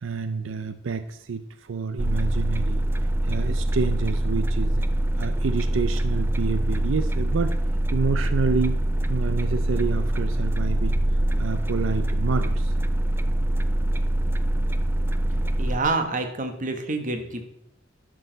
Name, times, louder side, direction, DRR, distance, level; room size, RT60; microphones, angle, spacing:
voice 1, 0.0-2.8 3.2-4.8 5.2-7.6 7.9-8.8 9.1-12.7, right 5 dB, 85° right, 10 dB, 0.5 m, -28 dB
sound 1, 2.0-15.8, right 1 dB, 10° right, 0.3 m, -24 dB
voice 2, 15.6-17.5, right 3 dB, 40° right, 6 dB, 1.1 m, -27 dB
10.5 x 6.3 x 3.9 m, 0.80 s
head